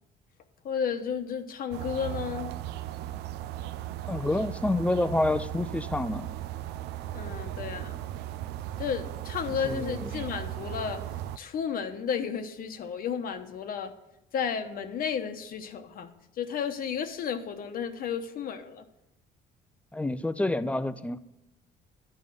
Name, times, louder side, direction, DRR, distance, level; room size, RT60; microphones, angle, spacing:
voice 1, 0.6-2.5 7.1-8.0 8.8-11.0 11.4-13.9 14.3-18.8, left 7 dB, 60° left, 7 dB, 1.1 m, -33 dB
sound 1, 1.7-11.4, right 13 dB, 80° right, 0.5 m, -37 dB
voice 2, 4.1-6.3 9.6-10.3 19.9-21.2, left 2 dB, 10° left, 14 dB, 0.5 m, -28 dB
11.0 x 5.5 x 7.7 m, 0.90 s
cardioid pair, 110°, 17 cm